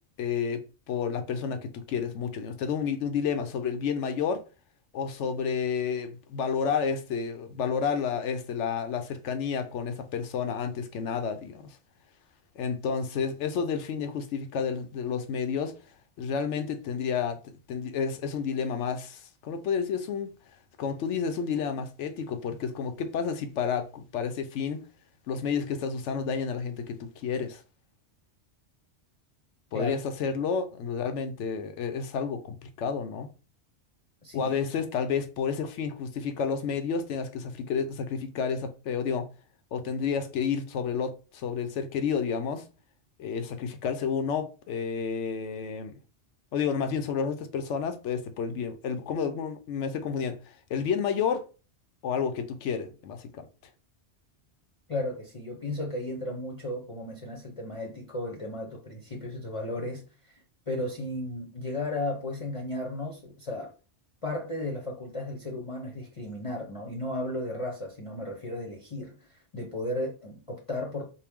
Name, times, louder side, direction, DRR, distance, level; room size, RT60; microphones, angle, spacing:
voice 1, 0.2-4.4 4.9-11.8 12.6-15.8 16.2-17.4 17.7-20.3 20.8-24.9 25.3-27.6 29.7-33.3 34.3-39.3 39.7-42.7 43.2-46.0 46.5-51.5 52.0-53.5, left 6 dB, 90° left, 1.0 m, -30 dB
voice 2, 34.2-34.6 54.9-60.0 60.3-63.7 64.2-71.1, left 1 dB, 35° left, 0.7 m, -34 dB
4.3 x 2.1 x 3.5 m
omnidirectional pair, 1.2 m